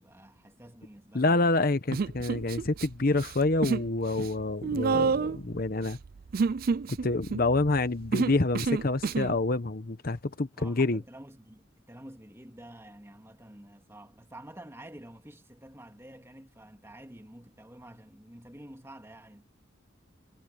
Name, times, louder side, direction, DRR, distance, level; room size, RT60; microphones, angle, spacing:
voice 1, 0.0-1.6 10.5-19.5, right 1 dB, 15° right, 2.4 m, -49 dB
voice 2, 1.1-6.0 6.9-11.0, left 2 dB, 50° left, 1.0 m, -27 dB
Human voice, 1.9-2.9 3.1-3.9 4.2-9.4, right 5 dB, 50° right, 0.4 m, -29 dB
head